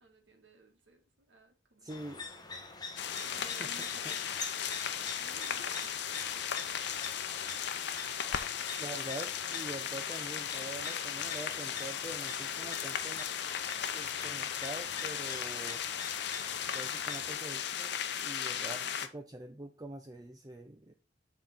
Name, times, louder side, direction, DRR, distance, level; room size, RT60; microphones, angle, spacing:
voice 1, 0.0-5.8, right 2 dB, 70° right, 1.8 m, -58 dB
voice 2, 1.8-2.2 3.6-3.7 8.8-13.2 13.9-15.8 16.7-20.9, right 2 dB, 20° right, 0.6 m, -45 dB
sound 1, 1.9-17.3, left 4 dB, 20° left, 1.0 m, -45 dB
sound 2, 3.0-19.1, left 8 dB, 65° left, 0.7 m, -36 dB
7.1 x 3.9 x 5.7 m
head